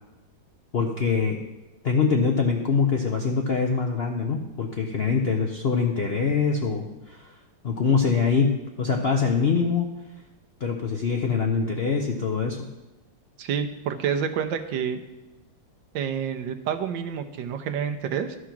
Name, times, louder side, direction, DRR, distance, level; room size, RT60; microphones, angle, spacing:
voice 1, 0.7-1.4 1.8-7.3 7.6-9.9 10.6-12.6, left 5 dB, 65° left, 2 dB, 0.6 m, -24 dB
voice 2, 13.4-15.0 15.9-18.4, right 7 dB, 80° right, 7 dB, 1.4 m, -28 dB
12.5 x 4.9 x 5.9 m, 1.1 s
omnidirectional pair, 2.0 m